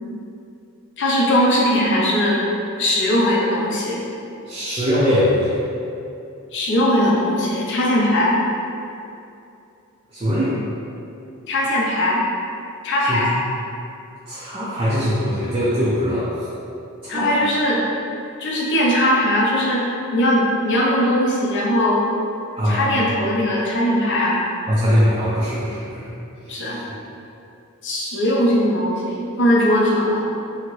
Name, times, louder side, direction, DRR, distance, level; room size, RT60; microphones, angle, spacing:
voice 1, 1.0-2.4 2.8-4.0 6.5-8.4 11.5-12.2 12.8-13.3 17.1-17.8 18.4-19.8 20.1-22.1 22.7-24.4 26.5-26.8 27.8-30.3, left 1 dB, 55° left, -4 dB, 0.5 m, -19 dB
voice 2, 4.5-5.6 10.1-10.5 13.1-13.3 14.3-16.4 17.0-17.4 22.6-23.0 24.7-26.1 26.5-26.8, equal, 25° right, -9 dB, 0.4 m, -21 dB
2.8 x 2.5 x 3.0 m, 2.7 s
head